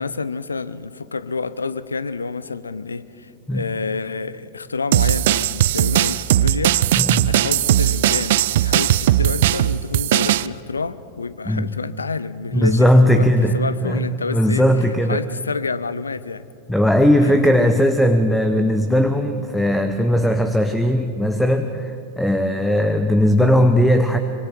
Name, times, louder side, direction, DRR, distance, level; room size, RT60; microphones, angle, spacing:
voice 1, 0.0-6.8 7.2-13.3 13.5-14.7 15.1-16.5 17.2-17.5, left 4 dB, 75° left, 15 dB, 0.6 m, -28 dB
sound 1, 4.9-10.5, right 13 dB, 55° right, 0.4 m, -18 dB
voice 2, 7.0-7.3 11.5-11.7 12.5-15.2 16.7-24.2, equal, 5° left, 8 dB, 0.9 m, -18 dB
25.0 x 24.5 x 4.6 m, 2.7 s
figure-of-eight pair, 90°, 0 cm